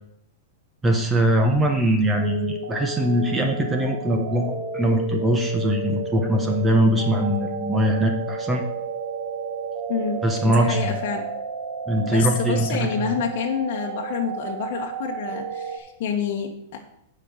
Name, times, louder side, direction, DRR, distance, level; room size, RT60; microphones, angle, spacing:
voice 1, 0.8-8.6 10.2-11.0 11.9-12.9, right 1 dB, 10° right, 4 dB, 1.0 m, -22 dB
sound 1, 2.1-15.8, right 4 dB, 55° right, 2.0 m, -32 dB
voice 2, 9.9-11.3 12.0-16.8, left 7 dB, 50° left, -1 dB, 1.3 m, -28 dB
9.8 x 5.3 x 6.5 m, 0.76 s
supercardioid pair, 155°, 0 cm